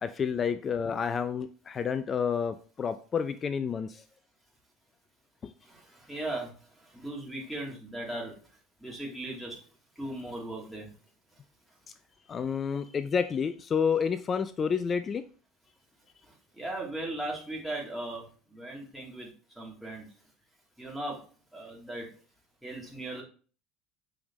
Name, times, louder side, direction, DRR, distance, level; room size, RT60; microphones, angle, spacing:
voice 1, 0.0-4.0 12.3-15.2, left 6 dB, 35° left, 11 dB, 0.5 m, -29 dB
voice 2, 6.1-6.5 6.9-8.3 8.8-9.5 10.0-10.9 16.6-18.2 18.5-19.3 19.6-20.0 20.8-21.2 21.5-22.1 22.6-23.2, right 1 dB, 5° right, -4 dB, 3.2 m, -37 dB
7.0 x 5.2 x 3.1 m, 0.39 s
hypercardioid pair, 75°, 0 cm